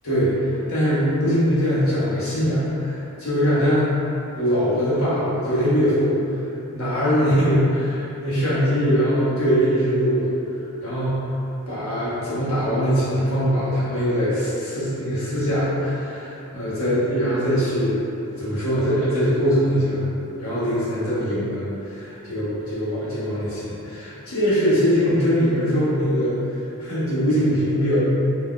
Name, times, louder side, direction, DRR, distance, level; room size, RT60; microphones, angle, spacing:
voice 1, 0.0-3.9 4.4-6.2 6.7-10.3 10.8-11.2 11.7-18.0 18.4-20.0 20.4-26.3 26.8-28.0, equal, 80° left, -10 dB, 1.0 m, -22 dB
2.8 x 2.3 x 3.7 m, 3.0 s
head